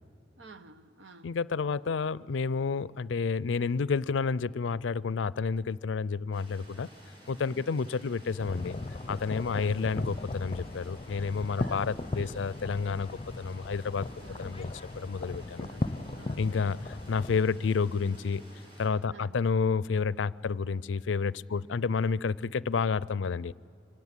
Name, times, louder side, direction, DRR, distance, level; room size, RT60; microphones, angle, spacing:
voice 1, 0.4-1.4 7.5-7.7 9.5-9.8 11.5-12.5 14.1-14.5 15.6-16.6 17.5-17.7 19.1-19.5 21.5-21.7, right 4 dB, 80° right, 1.0 m, -52 dB
voice 2, 1.2-6.9 7.3-8.8 9.1-14.1 14.4-14.7 15.0-15.7 16.4-18.4 18.8-23.5, left 5 dB, 90° left, 0.4 m, -30 dB
sound 1, 6.3-18.9, equal, 25° right, 5.5 m, -53 dB
sound 2, 8.4-17.4, left 2 dB, 30° left, 0.6 m, -37 dB
24.5 x 17.0 x 9.8 m
head